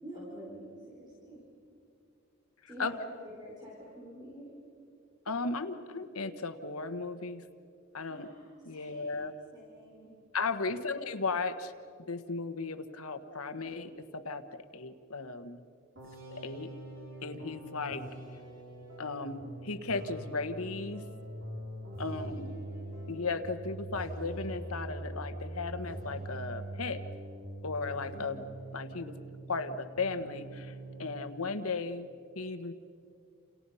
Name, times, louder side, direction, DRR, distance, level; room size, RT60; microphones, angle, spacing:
voice 1, 0.0-1.4 2.7-4.6 8.0-10.1 10.6-10.9 22.1-22.5 28.1-28.4, equal, 20° right, -4 dB, 4.2 m, -48 dB
voice 2, 5.3-7.4 7.9-8.3 8.6-9.3 10.3-11.7 12.1-14.4 14.7-15.6 16.3-16.7 17.2-18.0 19.0-21.0 22.0-22.3 23.1-27.0 27.6-28.3 28.7-29.1 29.5-30.7 31.0-32.1 32.3-32.7, left 4 dB, 90° left, 9 dB, 1.4 m, -35 dB
sound 1, 16.0-29.7 30.0-31.2, right 1 dB, 60° right, 4.6 m, -43 dB
29.0 x 28.5 x 5.7 m, 2.5 s
head